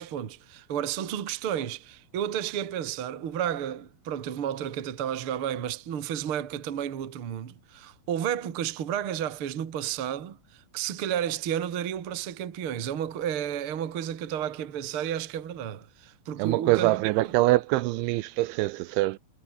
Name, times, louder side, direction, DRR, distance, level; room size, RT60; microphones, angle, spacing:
voice 1, 0.0-17.0, right 10 dB, 55° right, 1.5 m, -32 dB
voice 2, 16.4-19.2, right 19 dB, 80° right, 2.9 m, -24 dB
omnidirectional pair, 5.6 m